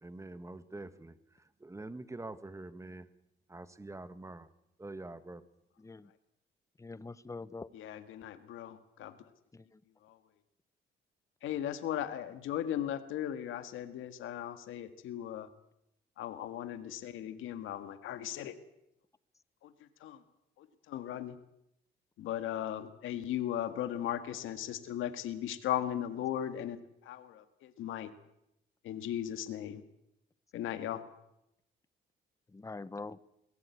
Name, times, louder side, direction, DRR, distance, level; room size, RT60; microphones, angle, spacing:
voice 1, 0.0-1.1 1.6-3.1 3.5-4.5 4.8-5.4, right 2 dB, 15° right, 13 dB, 1.6 m, -45 dB
voice 2, 5.8-6.1 6.8-7.7 9.5-9.8 32.5-33.2, left 3 dB, 15° left, 17 dB, 0.9 m, -44 dB
voice 3, 7.7-9.1 10.1-10.2 11.4-15.5 16.2-18.6 19.6-19.7 20.0-20.2 20.6-21.3 22.2-26.8 27.1-28.1 28.8-29.8 30.5-31.0, left 11 dB, 85° left, 10 dB, 1.8 m, -37 dB
23.0 x 16.5 x 8.5 m, 0.83 s
cardioid pair, 90°, 20 cm